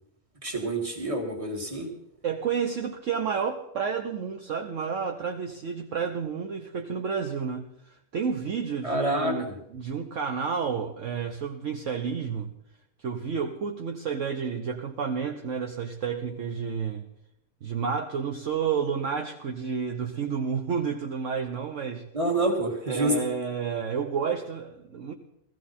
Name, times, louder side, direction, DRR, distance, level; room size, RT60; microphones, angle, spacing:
voice 1, 0.4-1.9 8.8-9.6 22.1-23.2, right 1 dB, 20° right, 2 dB, 2.0 m, -27 dB
voice 2, 2.2-12.5 13.0-17.1 17.6-22.0 22.9-25.1, right 6 dB, 60° right, 4 dB, 1.2 m, -30 dB
15.5 x 15.0 x 4.3 m, 0.81 s
omnidirectional pair, 1.6 m